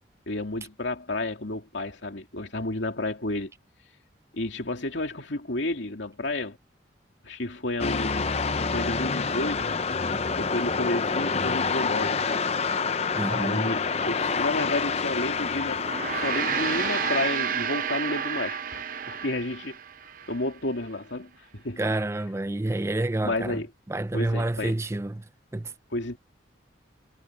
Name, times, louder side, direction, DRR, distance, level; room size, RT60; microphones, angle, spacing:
voice 1, 0.3-3.5 4.3-6.6 7.2-8.4 8.7-9.8 10.4-12.4 12.7-12.8 13.3-15.8 16.1-19.8 20.3-21.8 23.2-23.7 24.1-24.7 25.9-26.2, left 2 dB, 75° left, 2.6 m, -31 dB
sound 1, 7.8-17.3, left 5 dB, 35° left, 0.6 m, -28 dB
voice 2, 13.1-13.7 21.8-23.6 23.9-25.3 25.5-25.7, right 2 dB, 15° right, 0.4 m, -28 dB
Gong, 15.8-20.4, right 7 dB, 45° right, 0.8 m, -30 dB
head